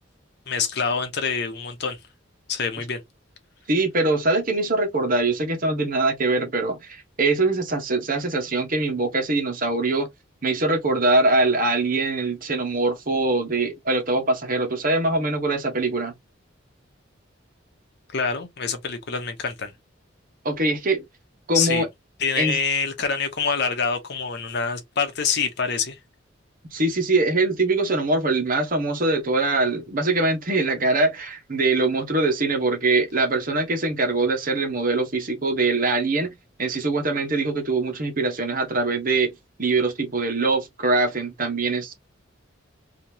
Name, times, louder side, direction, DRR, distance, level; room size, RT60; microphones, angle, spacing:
voice 1, 0.5-2.0 2.5-3.0 18.1-19.7 21.5-21.8 22.2-26.0, left 5 dB, 60° left, 1.0 m, -26 dB
voice 2, 3.7-10.1 10.4-16.1 20.4-21.0 21.5-21.9 22.4-22.6 26.7-39.3 39.6-41.9, right 2 dB, 45° right, 1.2 m, -23 dB
3.4 x 2.9 x 2.8 m
head